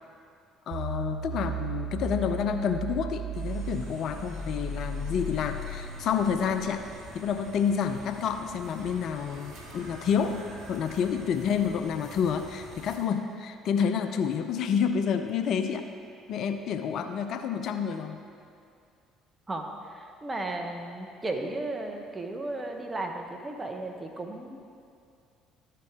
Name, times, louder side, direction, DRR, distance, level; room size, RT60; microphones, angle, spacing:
voice 1, 0.7-6.8 7.1-15.9 16.3-18.2, left 7 dB, 60° left, 7 dB, 0.5 m, -29 dB
sound 1, 0.7-7.0, right 3 dB, 80° right, 0.6 m, -35 dB
sound 2, 3.3-13.0, right 1 dB, 55° right, 1.8 m, -47 dB
voice 2, 19.5-24.6, right 2 dB, 25° right, 3 dB, 1.1 m, -35 dB
13.0 x 4.6 x 3.7 m, 2.4 s
hypercardioid pair, 55°, 0 cm